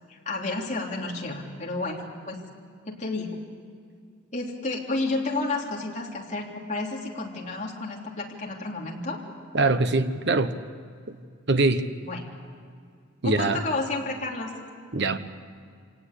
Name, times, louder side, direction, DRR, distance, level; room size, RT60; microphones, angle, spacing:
voice 1, 0.1-2.4 2.9-3.4 4.3-9.2 12.0-12.3 13.2-14.5, left 2 dB, 35° left, -2 dB, 3.3 m, -31 dB
voice 2, 9.5-10.6 11.1-11.2 11.5-11.9 13.2-13.6 14.9-15.2, right 2 dB, 55° right, 10 dB, 1.2 m, -23 dB
26.0 x 18.5 x 8.4 m, 2.2 s
head